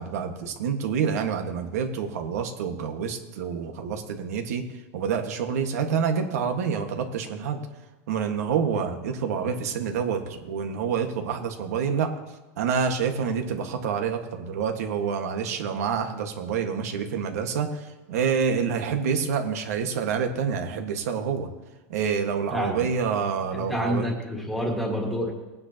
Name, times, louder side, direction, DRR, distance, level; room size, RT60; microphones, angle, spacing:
voice 1, 0.0-4.6 4.9-7.7 8.1-12.1 12.6-21.5 21.9-24.1, right 6 dB, 80° right, 5 dB, 1.6 m, -27 dB
voice 2, 22.5-22.8 23.5-25.3, equal, ahead, -1 dB, 1.8 m, -28 dB
19.0 x 9.6 x 2.9 m, 1.2 s
supercardioid pair, 175°, 8 cm